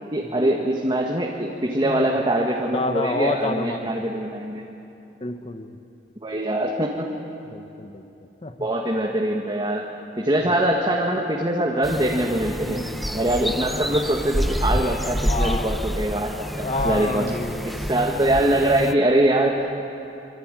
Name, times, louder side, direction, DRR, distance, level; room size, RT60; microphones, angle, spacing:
voice 1, 0.1-4.6 6.2-7.1 8.6-12.8 13.1-17.2 17.6-19.8, right 1 dB, 25° right, -1 dB, 1.9 m, -23 dB
voice 2, 2.7-3.9 5.2-5.8 7.5-8.1 8.4-8.5 12.6-13.2 15.3-15.8 16.6-17.9, left 2 dB, 35° left, 7 dB, 1.2 m, -29 dB
sound 1, 11.8-18.9, equal, ahead, 0.8 m, -28 dB
25.5 x 25.0 x 9.2 m, 2.9 s
head